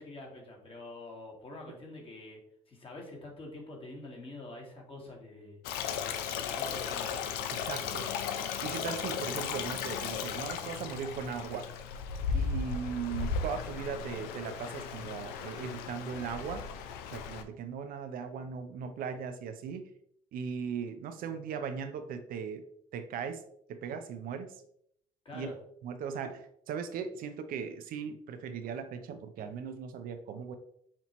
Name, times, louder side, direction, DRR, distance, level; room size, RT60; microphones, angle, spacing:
voice 1, 0.0-5.6 6.0-7.2 7.8-7.9 25.3-25.6, left 2 dB, 35° left, -1 dB, 1.8 m, -46 dB
Stream, 5.6-17.4, left 6 dB, 80° left, 0.5 m, -36 dB
voice 2, 7.5-8.1 8.6-11.7 12.3-16.7 17.1-19.9 20.3-22.7 22.9-23.4 23.7-24.6 25.3-25.5 25.8-30.6, right 6 dB, 65° right, 8 dB, 0.6 m, -38 dB
5.8 x 2.8 x 3.0 m, 0.70 s
supercardioid pair, 75°, 16 cm